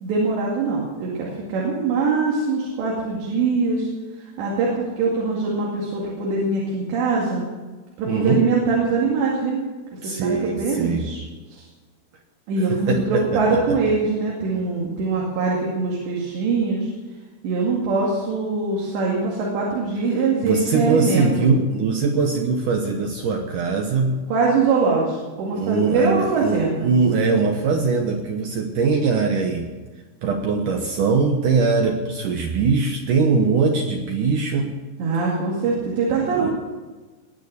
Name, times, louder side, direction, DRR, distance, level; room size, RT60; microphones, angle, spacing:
voice 1, 0.0-3.9 4.2-7.5 8.0-9.6 9.9-11.2 11.5-11.6 12.5-16.9 17.4-21.5 24.3-26.9 35.0-36.5, right 4 dB, 90° right, -4 dB, 4.5 m, -23 dB
voice 2, 8.1-8.4 10.0-11.1 12.9-13.4 20.4-24.2 25.5-29.7 30.2-34.7 36.4-36.5, right 4 dB, 70° right, 3 dB, 2.1 m, -21 dB
20.0 x 9.1 x 6.7 m, 1.3 s
omnidirectional pair, 4.9 m